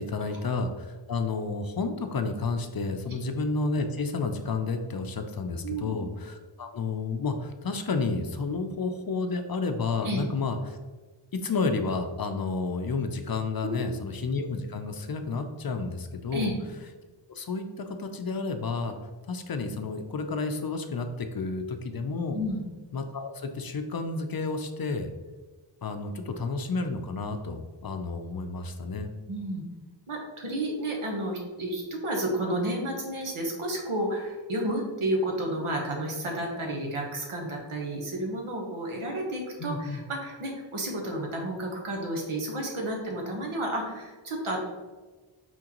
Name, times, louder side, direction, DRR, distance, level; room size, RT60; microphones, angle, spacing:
voice 1, 0.0-10.8 11.3-16.5 17.3-18.9 19.3-22.4 22.9-25.1 25.8-29.1 39.6-40.0, left 3 dB, 45° left, 7 dB, 0.5 m, -31 dB
voice 2, 5.6-6.0 10.0-10.2 13.6-13.8 16.3-16.5 22.3-22.6 29.3-29.6 30.1-44.6, right 1 dB, 80° right, 0 dB, 1.1 m, -31 dB
4.4 x 3.7 x 2.9 m, 1.3 s
cardioid pair, 40°, 50 cm